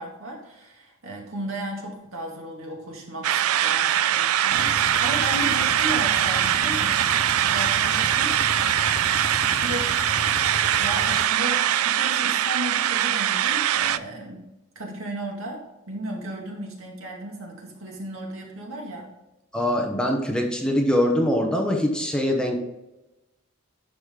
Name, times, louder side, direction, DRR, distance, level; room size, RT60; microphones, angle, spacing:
voice 1, 0.0-7.0 7.4-8.3 9.6-9.9 10.8-19.1, right 1 dB, 65° right, 0 dB, 2.2 m, -35 dB
sound 1, 3.2-14.0, right 11 dB, 85° right, 0.4 m, -22 dB
sound 2, 4.5-11.3, left 2 dB, 35° left, 0.7 m, -35 dB
voice 2, 19.5-22.6, left 1 dB, 5° left, 1 dB, 0.9 m, -23 dB
11.5 x 5.0 x 3.7 m, 0.99 s
head